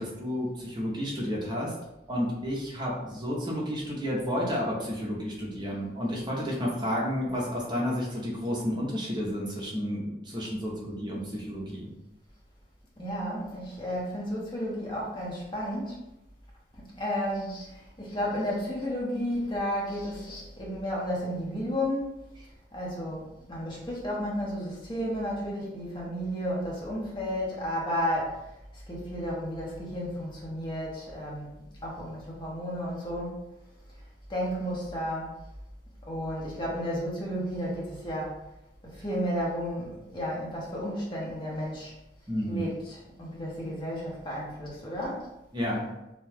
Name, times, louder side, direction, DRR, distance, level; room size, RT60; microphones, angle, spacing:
voice 1, 0.0-1.7 2.1-11.9 42.3-42.6 45.5-45.8, equal, 25° right, -3 dB, 0.6 m, -31 dB
voice 2, 13.0-16.0 16.8-22.1 22.7-23.2 23.5-28.4 28.9-31.5 31.8-33.4 34.3-35.3 36.1-38.4 38.8-41.9 42.5-45.3, equal, 25° left, -4 dB, 0.8 m, -32 dB
2.7 x 2.2 x 3.3 m, 0.93 s
head